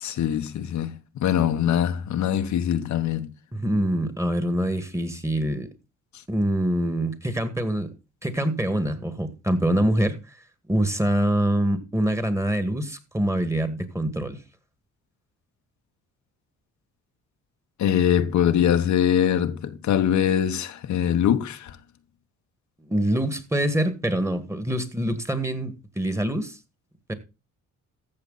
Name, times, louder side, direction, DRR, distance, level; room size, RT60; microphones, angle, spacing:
voice 1, 0.0-0.9 1.2-3.3 17.8-21.8, left 9 dB, 70° left, 1.1 m, -23 dB
voice 2, 3.5-5.7 6.3-7.9 8.2-10.2 10.7-14.4 22.8-26.6 27.1-27.2, right 1 dB, 10° right, 1.9 m, -25 dB
14.0 x 6.9 x 4.1 m
cardioid pair, 90°, 30 cm